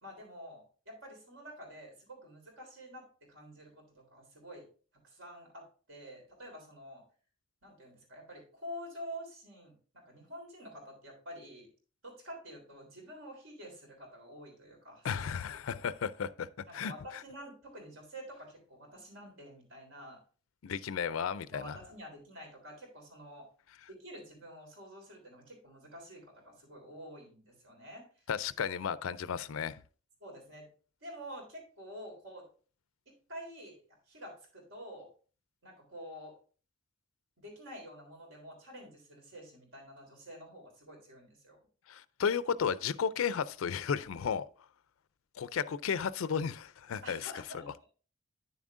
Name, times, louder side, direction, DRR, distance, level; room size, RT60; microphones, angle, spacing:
voice 1, 0.0-4.7 5.0-7.0 7.6-11.7 12.0-15.8 16.7-20.2 21.5-23.5 23.9-28.2 30.2-30.7 31.0-32.4 33.3-33.8 34.1-35.1 35.6-36.3 37.4-41.6 47.0-47.9, equal, 80° right, 3.6 m, -48 dB
voice 2, 15.0-16.5 16.7-16.9 20.6-21.8 28.3-29.8 41.9-44.4 45.4-47.3, left 7 dB, 85° left, 0.4 m, -33 dB
9.7 x 7.2 x 2.5 m
head